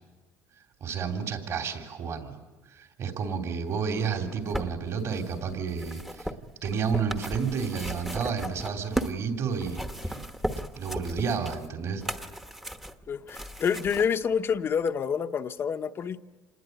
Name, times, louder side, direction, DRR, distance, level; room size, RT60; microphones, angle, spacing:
voice 1, 0.8-2.4 2.7-6.3 6.6-10.2 10.8-12.0, right 6 dB, 45° right, 4 dB, 3.3 m, -31 dB
sound 1, 4.1-9.2 9.6-14.1 14.9-15.0, right 1 dB, 5° right, 1.1 m, -36 dB
voice 2, 13.1-16.2, left 7 dB, 35° left, 9 dB, 0.9 m, -28 dB
27.0 x 20.0 x 9.4 m, 1.2 s
cardioid pair, 140°, 7 cm